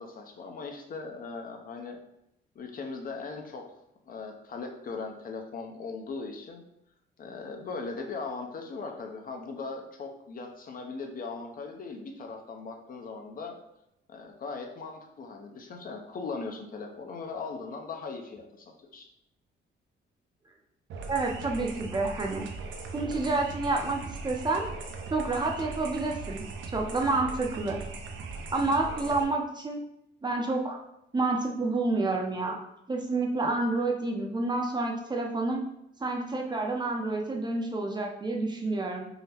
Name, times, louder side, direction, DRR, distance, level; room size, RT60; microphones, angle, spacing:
voice 1, 0.0-2.0 2.6-3.6 4.1-6.6 7.2-13.6 14.1-19.1, left 4 dB, 45° left, 3 dB, 0.5 m, -39 dB
sound 1, 20.9-29.2, right 4 dB, 70° right, 0.5 m, -39 dB
voice 2, 21.1-22.5 22.9-24.6 25.1-26.4 26.7-27.8 28.5-29.8 30.2-30.8 31.1-32.6 32.9-35.7 36.0-39.0, right 2 dB, 20° right, 1 dB, 0.5 m, -29 dB
3.7 x 2.1 x 2.8 m, 0.81 s
cardioid pair, 90°, 20 cm